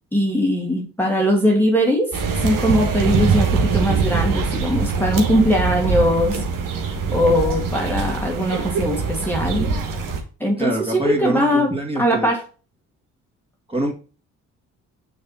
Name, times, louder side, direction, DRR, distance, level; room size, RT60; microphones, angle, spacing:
voice 1, 0.1-2.1 2.4-6.4 7.1-9.7 10.4-11.7 11.9-12.4, equal, 5° left, 1.8 m, -20 dB
sound 1, 2.1-10.2, right 4 dB, 70° right, 1.5 m, -22 dB
voice 2, 10.6-12.3 13.7-13.9, right 1 dB, 15° right, 2.2 m, -25 dB
6.6 x 3.4 x 5.5 m
supercardioid pair, 70°, 34 cm